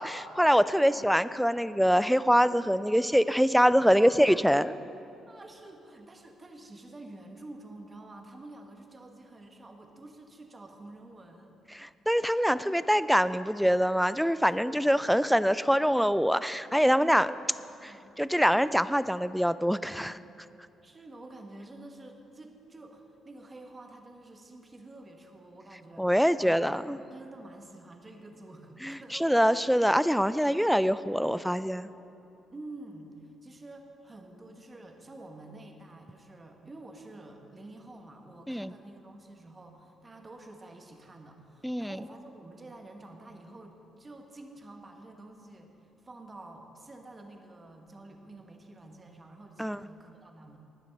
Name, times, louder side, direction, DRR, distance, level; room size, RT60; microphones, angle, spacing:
voice 1, 0.0-4.7 11.7-17.3 18.2-20.2 26.0-27.0 28.8-31.9 38.5-38.7 41.6-42.0 49.6-49.8, equal, ahead, 15 dB, 0.3 m, -24 dB
voice 2, 0.7-1.1 3.8-4.4 5.3-11.6 14.4-15.3 17.2-17.4 17.8-18.2 20.8-26.1 26.4-29.4 32.5-45.7 46.0-50.6, right 2 dB, 25° right, 3 dB, 1.4 m, -49 dB
19.0 x 6.5 x 5.3 m, 2.8 s
cardioid pair, 90°, 0 cm